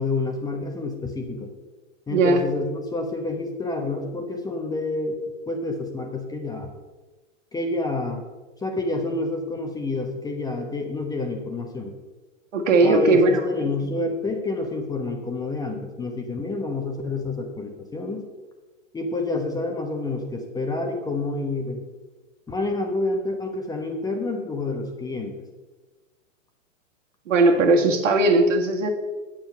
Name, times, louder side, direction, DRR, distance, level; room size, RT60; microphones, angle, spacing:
voice 1, 0.0-1.5 2.1-5.1 5.5-6.7 7.5-8.2 8.6-11.9 12.8-18.3 18.9-21.8 22.5-25.4, left 2 dB, 10° left, 3 dB, 1.0 m, -28 dB
voice 2, 2.1-2.4 12.5-13.4 27.3-28.9, right 2 dB, 70° right, 3 dB, 1.9 m, -18 dB
8.8 x 7.4 x 5.7 m, 1.2 s
hypercardioid pair, 125°, 39 cm